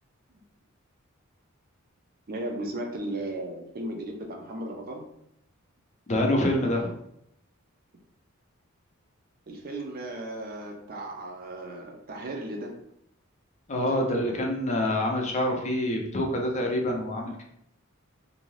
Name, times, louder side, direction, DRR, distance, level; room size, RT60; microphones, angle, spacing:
voice 1, 2.3-5.0 9.5-12.7, right 1 dB, 45° right, 2 dB, 0.5 m, -35 dB
voice 2, 6.1-6.9 13.7-17.4, left 1 dB, 35° left, 1 dB, 0.5 m, -26 dB
2.6 x 2.2 x 3.1 m, 0.75 s
head